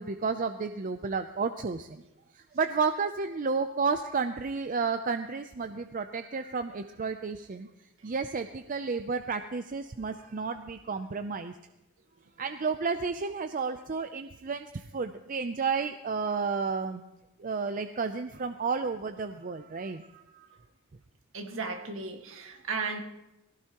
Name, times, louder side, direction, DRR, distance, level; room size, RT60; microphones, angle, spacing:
voice 1, 0.0-2.0 2.3-7.7 8.0-11.5 12.4-17.0 17.4-20.5, right 5 dB, 40° right, 8 dB, 0.5 m, -32 dB
voice 2, 21.3-23.0, right 4 dB, 65° right, 4 dB, 1.8 m, -35 dB
19.5 x 16.5 x 3.0 m, 0.92 s
head